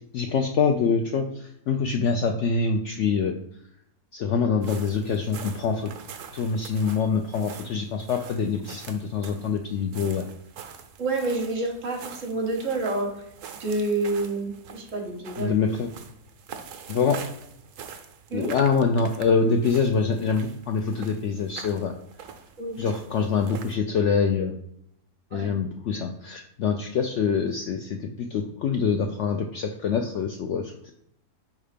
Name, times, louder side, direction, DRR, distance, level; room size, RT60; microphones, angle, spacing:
voice 1, 0.1-3.3 4.1-5.9 6.3-10.2 15.4-15.9 16.9-17.2 18.3-21.9 22.8-24.6 25.3-30.9, left 5 dB, 70° left, 3 dB, 0.7 m, -25 dB
sound 1, 4.6-23.8, right 7 dB, 85° right, 1.2 m, -44 dB
voice 2, 11.0-13.1 13.6-15.6 18.3-18.5 22.6-22.8 25.3-25.5, right 2 dB, 55° right, 1 dB, 1.4 m, -28 dB
5.4 x 3.6 x 5.0 m, 0.75 s
omnidirectional pair, 1.6 m